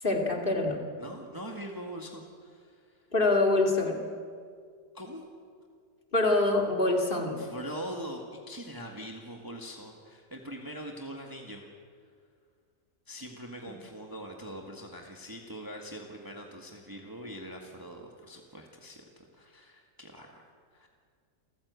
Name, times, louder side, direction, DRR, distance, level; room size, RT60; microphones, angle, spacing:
voice 1, 0.0-0.8 3.1-4.0 6.1-7.4, left 2 dB, 35° left, 2 dB, 2.6 m, -25 dB
voice 2, 1.0-3.1 4.9-5.3 7.4-11.7 13.1-19.0 19.3-20.9, equal, 15° right, 1 dB, 1.8 m, -42 dB
28.0 x 14.5 x 8.3 m, 2.1 s
omnidirectional pair, 1.5 m